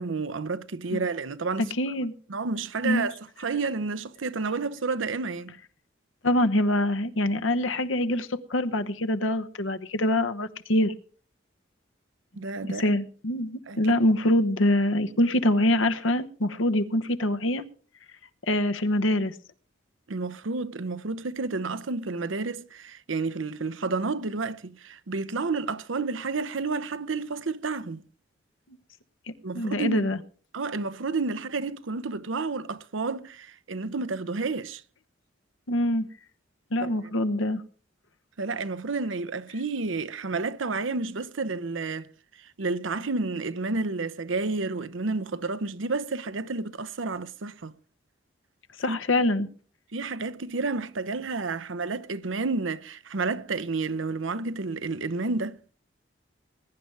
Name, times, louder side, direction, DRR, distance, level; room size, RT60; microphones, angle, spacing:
voice 1, 0.0-1.7 2.3-5.6 12.4-12.9 13.7-13.8 20.1-28.0 29.4-30.1 30.5-34.8 36.8-36.9 38.4-42.1 42.4-47.7 48.9-49.0 49.9-55.6, right 3 dB, 90° right, 0.8 m, -30 dB
voice 2, 1.8-2.1 2.8-3.1 6.2-10.9 12.7-17.6 18.5-19.3 29.5-30.2 35.7-36.1 36.7-37.6 48.8-49.5, left 1 dB, 90° left, 1.1 m, -24 dB
21.0 x 10.5 x 3.4 m
head